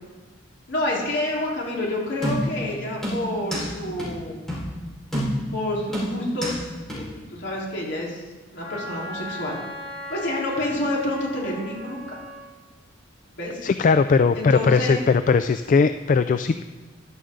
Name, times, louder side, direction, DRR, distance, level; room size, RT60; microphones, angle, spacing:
voice 1, 0.7-4.4 5.5-6.5 6.9-7.0 7.3-8.2 8.5-9.6 10.1-12.2 13.3-13.7 14.3-15.0, left 1 dB, 65° left, -4 dB, 3.9 m, -28 dB
sound 1, 2.2-2.7 3.0-3.7 4.0-4.1 4.5-4.7 5.1-5.6 5.9-6.6 6.9-7.0, equal, 5° left, 4.6 m, -27 dB
Wind instrument woodwind instrument, 8.6-12.5, left 1 dB, 80° left, 3.6 m, -37 dB
voice 2, 13.6-16.6, left 5 dB, 45° left, 10 dB, 0.3 m, -19 dB
14.0 x 11.0 x 3.8 m, 1.3 s
head